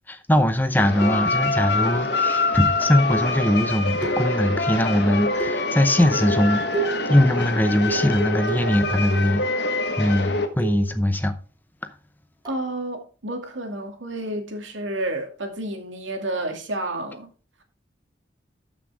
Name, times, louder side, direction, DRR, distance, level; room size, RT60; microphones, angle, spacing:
voice 1, 0.1-9.7 10.0-11.3, left 1 dB, 10° left, 0.7 m, -21 dB
sound 1, 0.8-10.5, left 3 dB, 65° left, 1.4 m, -25 dB
sound 2, 1.0-1.6 2.8-3.2 4.0-4.6 5.4-5.9 6.7-7.2 7.9-9.5 10.6-11.0 12.4-12.7, right 4 dB, 20° right, 2.0 m, -33 dB
voice 2, 12.5-17.3, right 1 dB, 90° right, 2.3 m, -30 dB
13.5 x 6.2 x 3.5 m
head